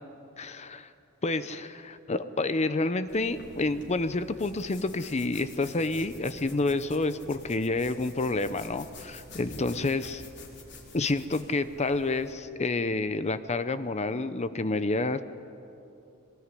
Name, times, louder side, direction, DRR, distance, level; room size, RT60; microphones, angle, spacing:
voice 1, 0.4-0.9 1.2-10.2 10.9-15.2, left 2 dB, 30° left, 12 dB, 0.7 m, -29 dB
sound 1, 3.1-12.3, left 2 dB, 55° left, 4.2 m, -48 dB
23.0 x 19.0 x 9.9 m, 2.7 s
head